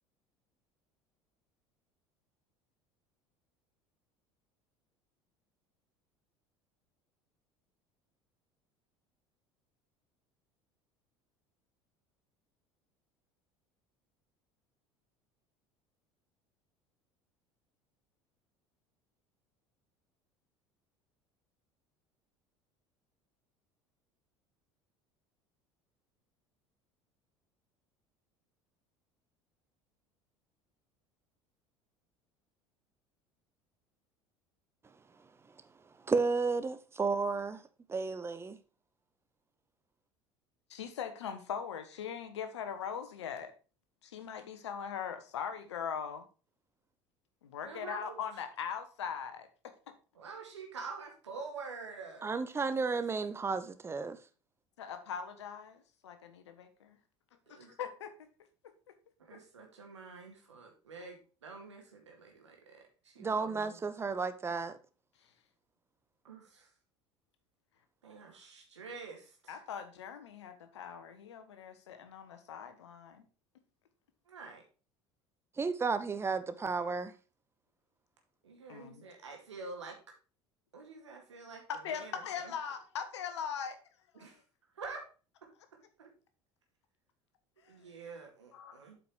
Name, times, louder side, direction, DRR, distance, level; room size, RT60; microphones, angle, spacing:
voice 1, 36.1-37.6 37.9-38.6 52.2-54.2 63.2-64.8 75.6-77.1, right 4 dB, 15° right, 0.8 m, -32 dB
voice 2, 40.7-43.5 44.0-46.3 47.4-49.7 54.8-57.0 57.5-58.3 58.9-59.0 69.5-73.2 78.7-79.0 81.8-83.8 84.1-84.3 87.6-87.7 88.5-88.8, left 7 dB, 70° left, 1.2 m, -41 dB
voice 3, 47.6-48.2 50.2-52.4 52.9-53.0 57.5-57.7 59.2-63.8 66.2-66.7 68.0-69.6 74.3-74.6 78.4-80.0 80.7-82.5 84.1-84.4 84.8-85.0 86.0-86.1 87.7-89.0, right 4 dB, 75° right, 2.1 m, -47 dB
8.1 x 5.2 x 4.6 m
figure-of-eight pair, 65°, 15 cm